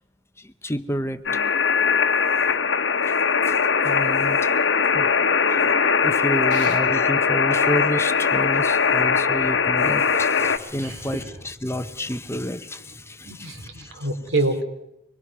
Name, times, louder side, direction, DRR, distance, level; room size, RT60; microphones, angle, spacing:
voice 1, 0.4-1.4 3.0-3.2 3.4-4.6 4.9-5.8 6.0-14.0, equal, 15° left, 10 dB, 0.8 m, -30 dB
sound 1, 1.3-10.6, left 5 dB, 65° left, 1.2 m, -20 dB
voice 2, 13.2-14.6, right 2 dB, 75° right, 5 dB, 3.4 m, -27 dB
24.5 x 21.0 x 6.1 m, 0.83 s
head